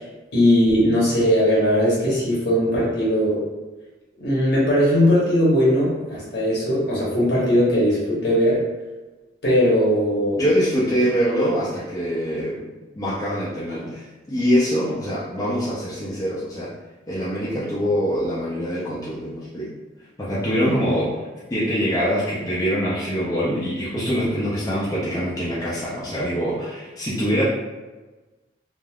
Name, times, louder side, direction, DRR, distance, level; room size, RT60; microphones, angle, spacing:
voice 1, 0.3-3.4 4.2-8.7 9.4-10.4, equal, 60° left, -6 dB, 1.1 m, -19 dB
voice 2, 10.4-12.7 12.9-16.7 17.1-19.7 20.2-27.4, equal, 20° left, -9 dB, 0.5 m, -24 dB
3.4 x 2.5 x 2.3 m, 1.2 s
head